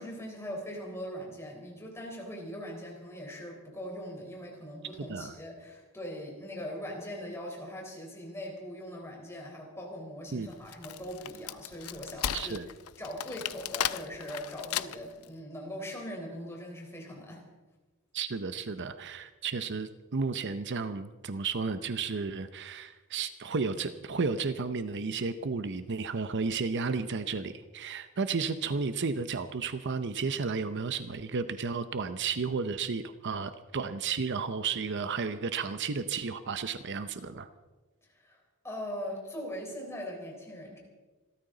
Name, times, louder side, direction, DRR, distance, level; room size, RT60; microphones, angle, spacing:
voice 1, 0.0-12.6 13.0-17.4 38.1-38.4 38.6-40.8, equal, 10° left, -1 dB, 4.1 m, -41 dB
Wood, 10.5-15.2, left 10 dB, 75° left, 0.6 m, -35 dB
voice 2, 12.3-12.7 18.1-37.5, right 4 dB, 55° right, 11 dB, 0.6 m, -33 dB
27.0 x 13.0 x 3.9 m, 1.2 s
head